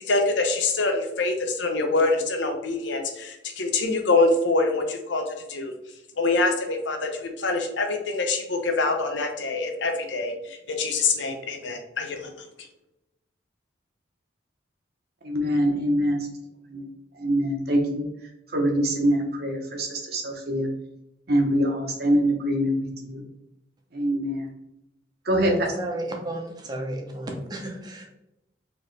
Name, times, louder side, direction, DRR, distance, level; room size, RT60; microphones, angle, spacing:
voice 1, 0.1-5.7 6.2-12.3, left 3 dB, 70° left, 4 dB, 0.7 m, -25 dB
voice 2, 15.2-16.3 16.7-16.8 17.2-18.1 18.5-20.7 21.3-23.2 23.9-24.4 25.3-25.7, equal, 55° right, 1 dB, 0.9 m, -24 dB
voice 3, 25.3-28.0, right 1 dB, 20° right, 1 dB, 0.7 m, -33 dB
4.4 x 3.0 x 3.2 m, 0.87 s
head